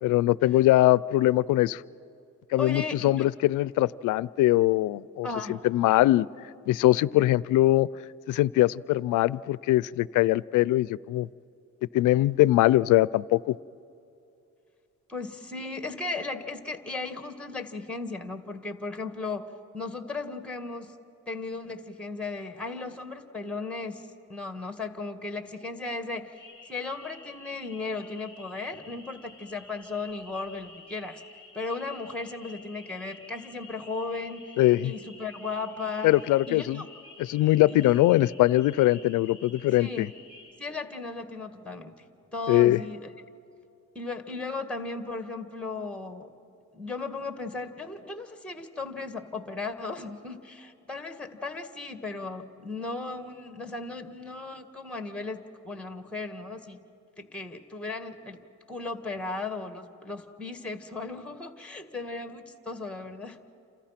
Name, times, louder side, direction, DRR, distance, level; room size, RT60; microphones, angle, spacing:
voice 1, 0.0-1.8 2.5-6.3 6.7-7.9 8.3-11.3 11.9-13.6 34.6-34.9 36.0-36.8 37.2-40.1 42.5-42.8, left 16 dB, 90° left, 20 dB, 0.5 m, -22 dB
voice 2, 2.6-3.3 5.2-5.7 15.1-20.9 21.3-24.0 24.3-26.4 26.7-31.2 31.5-34.5 34.8-36.1 36.5-36.9 37.7-37.8 39.8-40.1 40.6-42.0 42.3-43.1 44.0-46.3 46.7-56.9 57.2-58.4 58.7-63.5, left 3 dB, 5° left, 7 dB, 1.9 m, -36 dB
sound 1, 26.3-40.5, left 3 dB, 50° right, 6.9 m, -50 dB
29.0 x 27.5 x 5.9 m, 2.6 s
cardioid pair, 90°, 30 cm